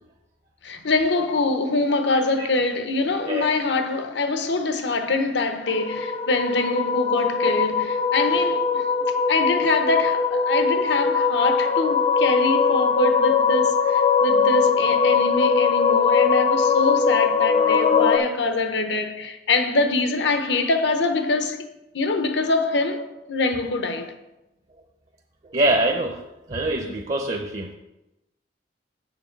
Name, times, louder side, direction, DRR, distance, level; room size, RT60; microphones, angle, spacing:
voice 1, 0.6-8.9 9.3-21.7 21.9-24.1, left 3 dB, 65° left, 0.8 m, -24 dB
sound 1, 5.7-18.2, left 5 dB, 30° left, 0.4 m, -21 dB
voice 2, 25.4-27.8, right 1 dB, 35° right, 0.6 m, -24 dB
7.5 x 6.6 x 4.5 m
head